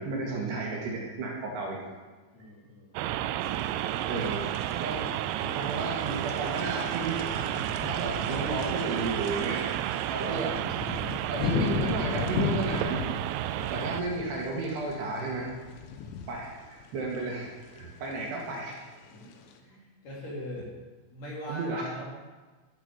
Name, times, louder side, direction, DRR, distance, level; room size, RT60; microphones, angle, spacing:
voice 1, 0.0-1.8 4.1-4.5 4.8-5.1 5.5-7.2 7.8-9.7 10.1-10.6 11.3-13.1 13.7-15.5 16.3-18.8 21.5-21.9, right 3 dB, 65° right, -2 dB, 3.7 m, -33 dB
voice 2, 2.3-3.0 4.8-5.3 8.4-8.5 19.1-19.2 19.6-20.7 21.1-22.0, equal, 45° left, -5 dB, 4.6 m, -41 dB
sound 1, 3.0-14.0, right 12 dB, 85° right, 2.6 m, -31 dB
sound 2, 3.4-19.6, left 6 dB, 90° left, 3.8 m, -37 dB
14.0 x 8.9 x 7.0 m, 1.3 s
omnidirectional pair, 5.6 m